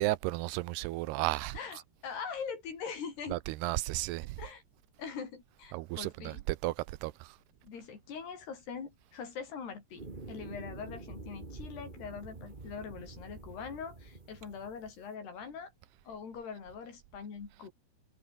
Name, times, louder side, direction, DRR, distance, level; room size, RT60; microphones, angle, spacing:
voice 1, 0.0-1.6 3.3-4.4 5.7-7.3, right 19 dB, 80° right, 2.7 m, -33 dB
voice 2, 1.5-3.4 4.4-4.6 5.0-6.4 7.6-15.7 16.1-17.7, left 6 dB, 75° left, 6.9 m, -42 dB
sound 1, 10.0-15.0, right 3 dB, 25° right, 1.0 m, -47 dB
omnidirectional pair, 4.8 m